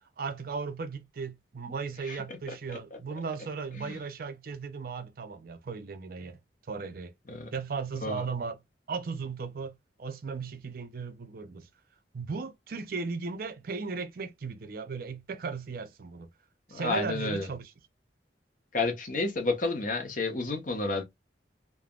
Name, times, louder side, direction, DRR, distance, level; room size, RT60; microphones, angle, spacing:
voice 1, 0.2-6.4 6.7-7.1 7.5-8.6 8.9-11.7 12.1-16.3 16.7-17.7, right 5 dB, 55° right, 0.4 m, -36 dB
voice 2, 2.0-2.4 3.8-4.0 7.3-7.5 8.0-8.2 16.7-17.5 18.7-21.0, left 3 dB, 45° left, 0.8 m, -31 dB
3.3 x 2.1 x 2.3 m
head